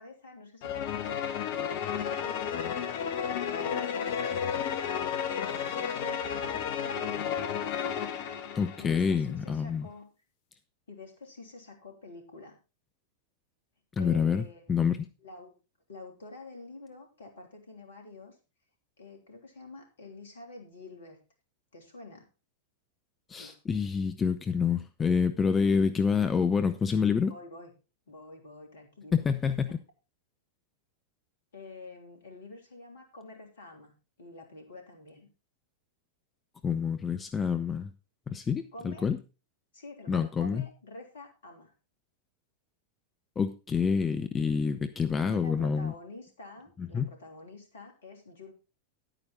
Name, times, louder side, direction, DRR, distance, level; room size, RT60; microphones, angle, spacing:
voice 1, 0.0-2.6 3.2-4.5 5.3-7.6 8.8-10.1 10.9-12.6 14.0-14.7 15.2-15.5 15.9-18.4 19.0-21.2 21.7-22.3 23.4-23.6 27.3-27.7 28.1-29.2 29.7-29.8 31.5-35.3 38.7-39.1 39.7-41.7 45.2-48.5, left 2 dB, 65° left, 3 dB, 3.1 m, -47 dB
sound 1, 0.6-9.2, left 8 dB, 45° left, 1.2 m, -32 dB
voice 2, 8.5-9.9 14.0-14.4 14.7-15.0 23.3-27.3 29.1-29.7 36.6-37.9 38.3-39.2 40.1-40.6 43.4-45.9 46.9-47.1, left 6 dB, 20° left, 9 dB, 0.7 m, -27 dB
10.5 x 9.1 x 3.8 m, 0.31 s
figure-of-eight pair, 90°, 0 cm